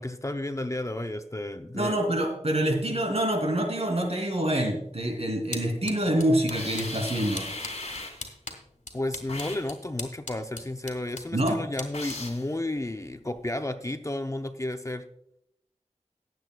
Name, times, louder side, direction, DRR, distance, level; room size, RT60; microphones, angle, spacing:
voice 1, 0.0-2.0 8.9-15.0, left 1 dB, 25° left, 7 dB, 0.6 m, -32 dB
voice 2, 1.7-7.5 11.3-11.6, right 1 dB, 55° right, 2 dB, 3.0 m, -26 dB
sound 1, 4.8-13.6, left 2 dB, 75° left, 1.9 m, -43 dB
sound 2, 6.5-8.3 9.3-9.7 11.9-12.5, left 2 dB, 60° left, 2.1 m, -37 dB
18.5 x 8.1 x 2.3 m, 0.76 s
wide cardioid pair, 50°, 13 cm